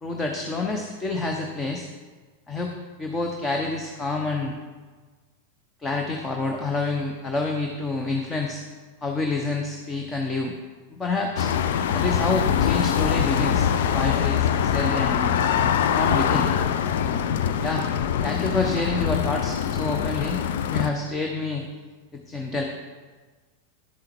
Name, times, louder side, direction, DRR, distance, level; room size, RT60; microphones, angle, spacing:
voice 1, 0.0-1.9 2.5-2.7 3.0-4.5 5.8-8.6 9.0-10.5 10.9-11.5 11.9-15.3 15.9-16.5 17.6-17.9 18.2-20.4 20.7-21.7 22.1-22.6, left 3 dB, 20° left, 2 dB, 1.0 m, -28 dB
sound 1, 11.4-20.9, left 8 dB, 55° left, 0.5 m, -23 dB
11.0 x 7.6 x 4.5 m, 1.4 s
figure-of-eight pair, 90°, 0 cm